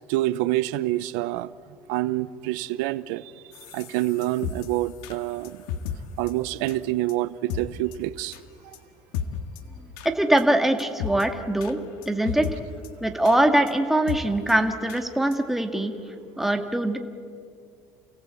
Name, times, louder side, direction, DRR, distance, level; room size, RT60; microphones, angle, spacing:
voice 1, 0.1-1.5 1.9-3.3 3.7-5.6 6.2-8.4 8.6-8.8, right 16 dB, 85° right, 16 dB, 0.7 m, -27 dB
sound 1, 3.5-6.0 6.3-6.4 6.7-6.8 7.1-7.2 7.5-7.6 7.9-8.0 8.3-8.4 8.7-8.8 9.1-9.6 10.0-10.1 10.4-10.5 10.8-11.2 11.6-11.7 12.0-12.5 12.8-12.9 13.2-13.4 13.7-13.8 14.1-14.2 14.5-14.6 14.9-15.0 15.3-15.4 15.8-15.9, left 9 dB, 85° left, 1.7 m, -33 dB
voice 2, 10.2-11.8 12.1-12.4 13.0-15.9 16.4-17.0, right 1 dB, 5° right, 4 dB, 2.0 m, -22 dB
29.0 x 17.5 x 8.4 m, 2.2 s
cardioid pair, 135°, 8 cm